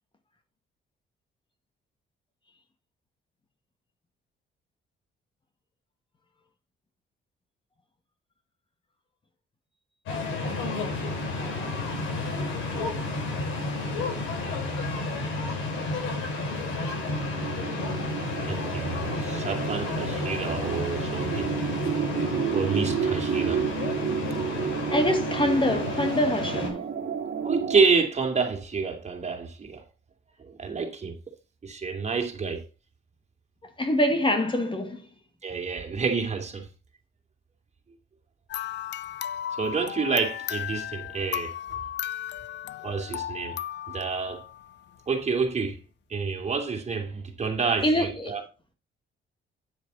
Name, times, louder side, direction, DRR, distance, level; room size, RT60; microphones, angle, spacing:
sound 1, 10.1-26.7, left 2 dB, 90° left, 6.2 m, -31 dB
voice 1, 12.1-12.7 19.0-19.1 24.9-26.8 33.8-35.1 47.8-48.4, left 1 dB, 25° left, 1.9 m, -25 dB
sound 2, 16.4-27.8, right 7 dB, 50° right, 2.2 m, -31 dB
voice 2, 18.4-21.5 22.5-23.7 27.4-29.8 30.4-31.1 31.6-32.6 35.4-36.7 39.5-41.5 42.8-43.6 43.9-44.4 45.1-45.8 46.1-48.4, right 5 dB, 35° right, 2.9 m, -28 dB
sound 3, 38.5-45.0, left 11 dB, 60° left, 0.5 m, -35 dB
10.0 x 7.2 x 4.1 m
cardioid pair, 90°, 20 cm